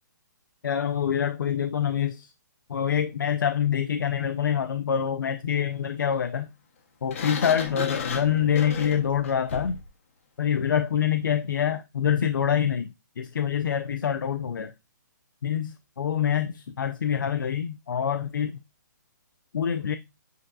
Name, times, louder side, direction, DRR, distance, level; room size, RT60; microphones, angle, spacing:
voice 1, 0.6-2.3 2.7-6.5 7.0-9.8 10.4-14.7 15.4-18.6 19.5-20.0, left 8 dB, 85° left, 0.4 m, -26 dB
Sliding door, 7.1-9.9, left 6 dB, 45° left, 0.8 m, -34 dB
7.5 x 2.6 x 2.3 m
hypercardioid pair, 165°, 10 cm